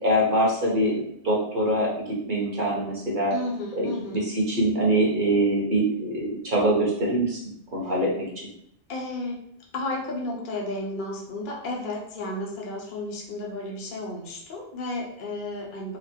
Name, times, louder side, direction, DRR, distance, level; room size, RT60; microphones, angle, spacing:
voice 1, 0.0-1.9 2.3-3.3 3.8-3.9 4.1-7.4 7.7-8.1, right 1 dB, 45° right, -3 dB, 1.2 m, -23 dB
voice 2, 3.3-4.2 7.8-7.9 8.9-9.4 9.7-16.0, left 2 dB, 45° left, -2 dB, 0.9 m, -33 dB
4.1 x 2.0 x 4.4 m, 0.71 s
omnidirectional pair, 1.3 m